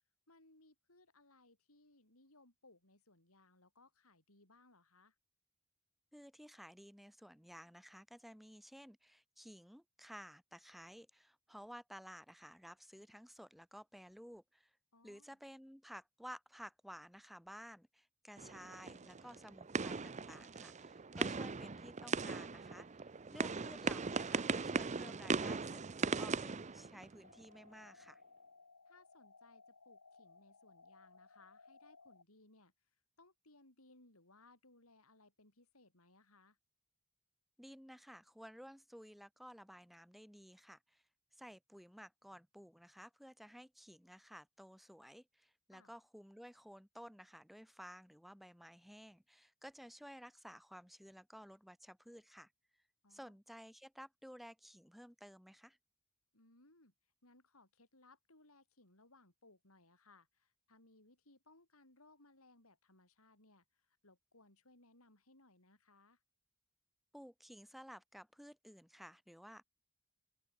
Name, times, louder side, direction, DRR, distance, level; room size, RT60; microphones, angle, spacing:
voice 1, 0.3-5.2 14.9-15.4 23.3-23.5 28.9-32.7 33.2-36.6 45.7-45.9 53.0-53.4 56.3-56.9 57.2-66.2, left 2 dB, 70° left, 7.0 m, -66 dB
voice 2, 6.1-14.8 15.0-28.2 37.6-41.0 41.4-52.5 53.1-55.8 67.1-69.6, equal, ahead, 3.6 m, -55 dB
sound 1, 18.4-27.5, right 4 dB, 30° right, 0.7 m, -39 dB
sound 2, 27.2-32.2, left 4 dB, 90° left, 4.9 m, -62 dB
open air
head